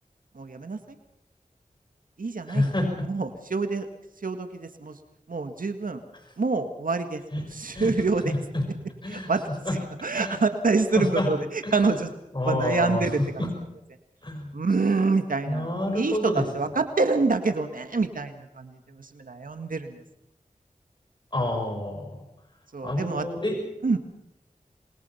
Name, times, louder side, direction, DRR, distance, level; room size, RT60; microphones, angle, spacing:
voice 1, 0.4-0.8 2.2-2.7 3.1-3.9 4.2-5.0 5.3-6.0 6.4-8.3 9.1-9.4 10.0-12.1 12.5-13.5 14.5-20.0 22.7-23.3 23.8-24.0, right 3 dB, 85° right, 7 dB, 1.8 m, -26 dB
voice 2, 2.5-3.1 7.3-7.4 7.7-7.9 8.2-8.7 9.0-9.3 9.6-9.8 10.1-10.4 11.0-11.3 11.6-11.9 12.3-13.1 13.4-13.5 14.2-14.6 15.5-16.5 21.3-22.1 22.8-23.6, left 1 dB, 35° left, 3 dB, 5.8 m, -28 dB
27.5 x 21.5 x 5.8 m, 0.82 s
wide cardioid pair, 50°, 14 cm